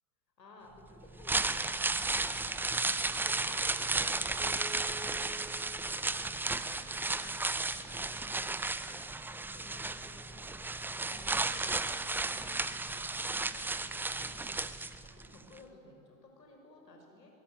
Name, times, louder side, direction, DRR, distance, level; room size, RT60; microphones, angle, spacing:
voice 1, 0.4-17.4, left 2 dB, 80° left, 2 dB, 5.9 m, -57 dB
sound 1, 1.1-15.3 15.6-15.7, right 3 dB, 5° right, 0.5 m, -34 dB
sound 2, 4.4-6.3, right 2 dB, 25° right, 6.4 m, -49 dB
23.0 x 21.0 x 9.7 m, 2.4 s
figure-of-eight pair, 90°, 50 cm